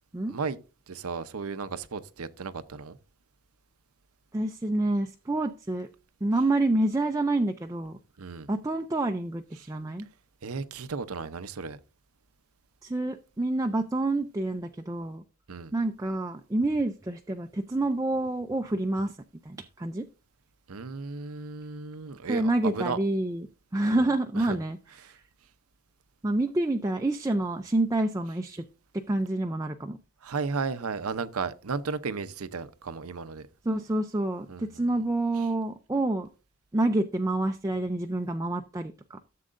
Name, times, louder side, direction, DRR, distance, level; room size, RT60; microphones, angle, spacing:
voice 1, 0.9-3.0 8.2-8.5 10.4-11.8 15.5-15.7 20.7-23.0 24.0-24.1 24.4-24.6 25.0-25.1 30.2-33.5 34.5-34.8 35.4-35.5, right 4 dB, 90° right, 0.7 m, -34 dB
voice 2, 4.3-5.9 6.2-8.0 8.5-10.1 12.8-15.2 15.7-19.2 19.4-20.1 22.3-23.5 23.7-24.8 25.0-25.2 26.2-28.6 28.9-30.0 33.6-36.3 36.7-39.2, right 2 dB, 15° right, 0.4 m, -28 dB
13.5 x 7.6 x 2.5 m
head